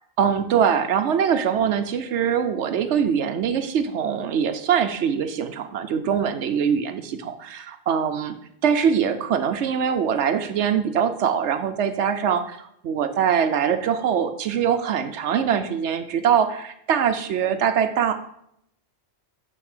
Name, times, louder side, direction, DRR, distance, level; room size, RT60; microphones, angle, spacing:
voice 1, 0.2-8.4 8.6-18.1, right 8 dB, 80° right, 8 dB, 0.9 m, -23 dB
6.7 x 5.9 x 6.5 m, 0.75 s
omnidirectional pair, 1.2 m